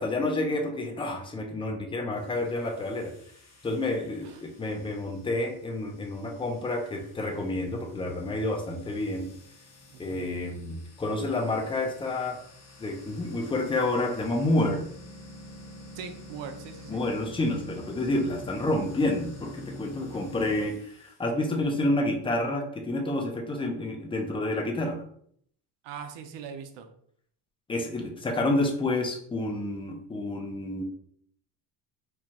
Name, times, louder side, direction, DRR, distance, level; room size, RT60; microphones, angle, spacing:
voice 1, 0.0-3.1 3.6-9.3 10.0-12.4 12.8-14.8 16.9-25.0 27.7-30.8, left 2 dB, 15° left, 2 dB, 0.4 m, -29 dB
sound 1, 2.1-21.2, left 1 dB, 45° left, 1.4 m, -49 dB
voice 2, 9.9-10.2 16.0-17.0 20.0-20.3 25.8-26.9, right 7 dB, 80° right, 8 dB, 0.7 m, -41 dB
4.4 x 2.3 x 2.9 m, 0.64 s
cardioid pair, 140°, 44 cm